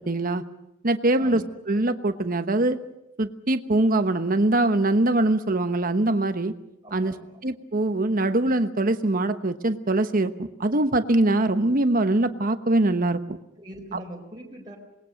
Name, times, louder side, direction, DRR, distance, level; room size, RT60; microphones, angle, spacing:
voice 1, 0.1-0.4 0.8-2.8 3.2-6.5 6.9-7.2 7.4-13.4, right 2 dB, 45° right, 9 dB, 1.2 m, -23 dB
voice 2, 6.8-7.4 13.6-14.8, equal, 20° right, -1 dB, 4.2 m, -42 dB
26.5 x 20.5 x 6.5 m, 0.84 s
head